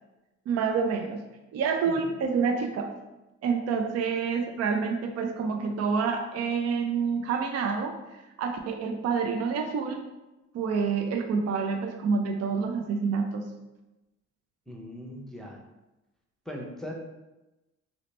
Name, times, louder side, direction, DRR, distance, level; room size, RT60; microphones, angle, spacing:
voice 1, 0.5-1.2 1.5-2.9 3.4-10.0 10.5-13.4, right 5 dB, 55° right, 5 dB, 0.5 m, -28 dB
voice 2, 14.7-15.6 16.5-16.9, equal, ahead, -2 dB, 0.6 m, -39 dB
3.0 x 2.8 x 3.1 m, 1.0 s
cardioid pair, 90°, 30 cm